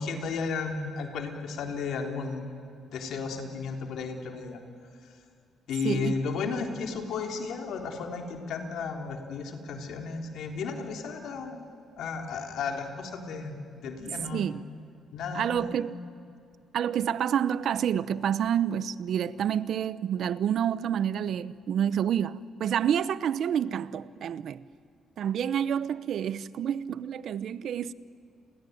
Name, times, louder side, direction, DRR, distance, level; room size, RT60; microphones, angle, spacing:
voice 1, 0.0-2.5 2.9-4.6 5.7-11.6 12.0-14.5 15.1-15.7, left 5 dB, 75° left, 3.6 m, -34 dB
voice 2, 5.8-6.2 14.3-14.7 15.3-15.9 16.7-24.6 25.2-27.9, right 9 dB, 65° right, 0.8 m, -28 dB
30.0 x 21.5 x 9.4 m
cardioid pair, 90°, 0 cm